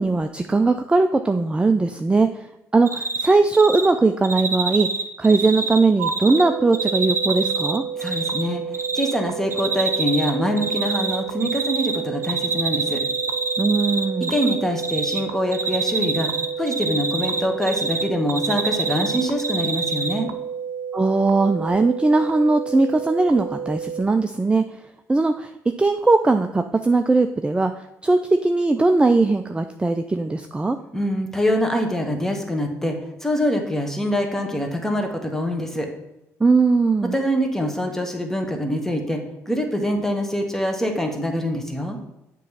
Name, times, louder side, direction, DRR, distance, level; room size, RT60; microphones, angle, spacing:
voice 1, 0.0-2.5 2.7-4.9 5.2-7.8 13.6-14.3 20.9-24.6 25.1-25.5 25.8-30.8 36.4-37.2, right 3 dB, 15° right, 7 dB, 0.4 m, -19 dB
Cricket, 2.9-3.3 3.5-3.9 4.2-6.4 6.7-8.4 8.7-9.1 9.5-10.3 10.6-12.0 12.2-14.5 14.8-15.2 15.5-18.0 18.3-20.1, right 4 dB, 40° right, 0.9 m, -25 dB
sound 1, 6.0-24.0, right 7 dB, 85° right, 0.5 m, -31 dB
voice 2, 8.0-13.0 14.3-16.3 16.6-20.3 30.9-35.9 37.1-42.0, equal, 5° left, 3 dB, 1.4 m, -24 dB
7.6 x 3.1 x 5.6 m, 0.91 s
supercardioid pair, 60°, 7 cm